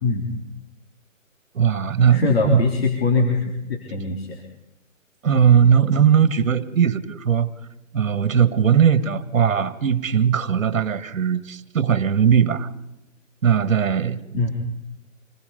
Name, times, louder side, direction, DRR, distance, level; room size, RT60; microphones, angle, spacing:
voice 1, 1.5-2.7 5.2-7.5 7.9-12.7 13.4-14.5, right 8 dB, 70° right, 13 dB, 1.8 m, -19 dB
voice 2, 2.1-4.3 14.3-14.5, left 3 dB, 50° left, 1 dB, 3.5 m, -22 dB
26.5 x 20.5 x 5.3 m, 0.90 s
hypercardioid pair, 160°, 40 cm